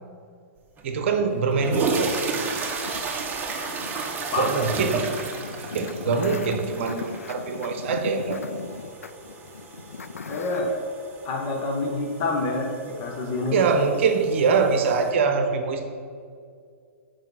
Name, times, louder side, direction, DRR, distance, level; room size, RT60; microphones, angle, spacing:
sound 1, 0.8-0.9 1.5-15.1, right 4 dB, 25° right, 1.1 m, -34 dB
voice 1, 0.8-2.2 4.4-5.1 5.7-8.4 13.5-15.8, right 5 dB, 60° right, 6 dB, 0.9 m, -23 dB
sound 2, 2.1-10.7, left 5 dB, 90° left, 0.4 m, -38 dB
voice 2, 4.3-5.1 10.3-10.7 11.2-13.6, left 2 dB, 40° left, 0 dB, 1.8 m, -27 dB
7.1 x 5.0 x 5.9 m, 2.2 s
hypercardioid pair, 110°, 8 cm